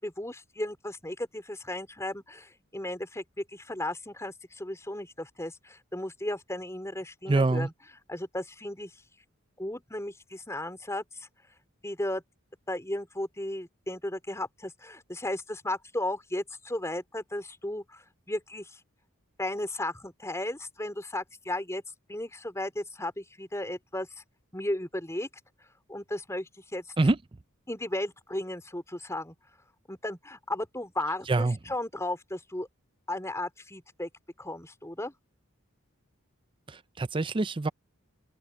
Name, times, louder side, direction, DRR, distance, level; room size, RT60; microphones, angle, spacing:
voice 1, 0.0-7.7 8.1-8.9 9.6-11.3 11.8-12.2 12.7-18.8 19.4-21.8 22.1-24.1 24.5-25.3 25.9-26.9 27.7-29.3 29.9-32.7 33.1-34.1 34.4-35.1, left 1 dB, 15° left, 4.3 m, -35 dB
voice 2, 7.3-7.7 27.0-27.2 31.3-31.6 36.7-37.7, right 2 dB, 25° right, 0.5 m, -25 dB
open air
head